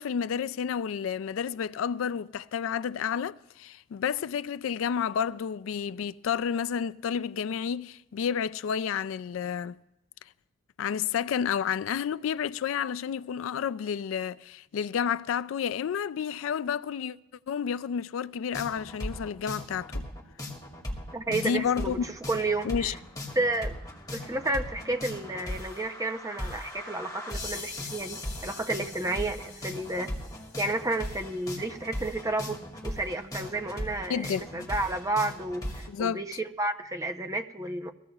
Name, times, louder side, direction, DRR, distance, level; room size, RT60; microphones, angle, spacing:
voice 1, 0.0-9.8 10.8-17.2 17.5-20.1 21.3-22.0 22.6-22.9 34.1-34.7 35.9-36.2, left 7 dB, 80° left, 0.3 m, -30 dB
sound 1, 18.5-35.9, left 1 dB, 20° left, 2.2 m, -38 dB
voice 2, 21.1-23.0 23.3-23.7 24.1-30.1 30.6-37.9, right 2 dB, 15° right, 0.7 m, -31 dB
22.5 x 15.5 x 2.4 m
head